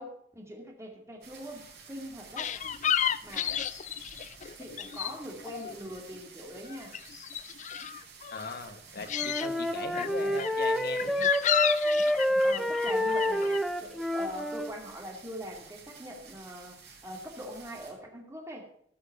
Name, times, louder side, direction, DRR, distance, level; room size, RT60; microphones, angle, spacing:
voice 1, 0.0-2.5 3.2-3.6 4.6-6.9 10.2-10.5 12.4-16.8 17.0-18.6, equal, 15° right, 1 dB, 2.4 m, -42 dB
sound 1, 1.2-17.9, right 5 dB, 65° right, 4.4 m, -52 dB
sound 2, 2.4-5.2 5.4-6.3 6.6-8.6 9.0-9.5 9.9-13.6, left 9 dB, 40° left, 0.4 m, -32 dB
voice 2, 8.3-11.2, left 3 dB, 60° left, 6 dB, 1.5 m, -40 dB
Wind instrument woodwind instrument, 9.1-14.8, equal, ahead, 0.6 m, -28 dB
14.0 x 6.1 x 6.9 m, 0.66 s
head